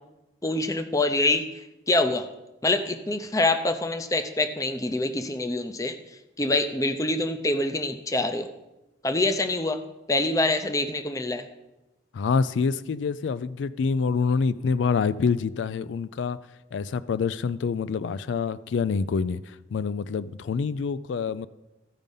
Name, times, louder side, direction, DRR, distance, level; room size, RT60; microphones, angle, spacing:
voice 1, 0.4-1.4 1.9-2.2 2.6-6.0 6.4-8.5 9.0-9.8 10.1-11.4, left 2 dB, 20° left, 8 dB, 0.6 m, -25 dB
voice 2, 12.1-16.4 16.7-21.5, left 5 dB, 85° left, 15 dB, 0.3 m, -26 dB
14.0 x 5.2 x 5.4 m, 0.98 s
head